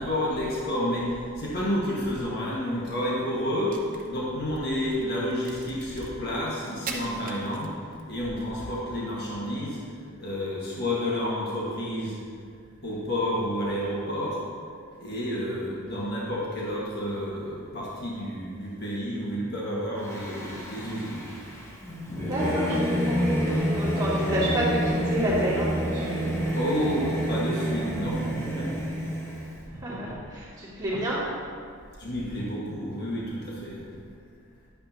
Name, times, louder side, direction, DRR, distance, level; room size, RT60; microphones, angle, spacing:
voice 1, 0.0-3.8 4.1-7.7 8.1-9.8 10.2-12.1 12.8-14.4 15.0-21.3 26.5-28.9 32.0-33.9, equal, 50° left, -5 dB, 1.6 m, -30 dB
Crack, 3.5-8.1, right 4 dB, 40° right, 0.8 m, -42 dB
Singing / Musical instrument, 20.0-29.6, equal, 15° left, 1.3 m, -28 dB
voice 2, 22.2-26.2 26.5-26.6 29.7-31.3, right 1 dB, 20° right, -10 dB, 2.3 m, -29 dB
11.5 x 8.7 x 2.9 m, 2.2 s
head